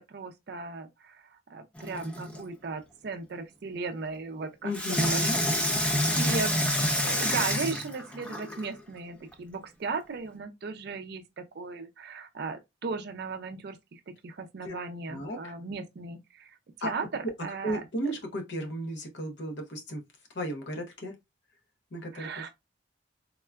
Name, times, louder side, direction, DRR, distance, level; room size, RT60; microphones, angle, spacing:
voice 1, 0.0-5.6 6.1-6.6 7.0-17.8 22.1-22.5, right 4 dB, 55° right, 0.4 m, -37 dB
Water tap faucet / Sink (filling or washing), 1.8-2.4 4.7-8.7 9.3-9.4, equal, 5° left, 0.4 m, -28 dB
voice 2, 4.6-5.3 14.6-14.7 15.1-15.5 16.8-16.9 17.6-20.0 20.3-21.1 21.9-22.3, right 1 dB, 60° left, 0.7 m, -34 dB
3.6 x 2.2 x 2.2 m
head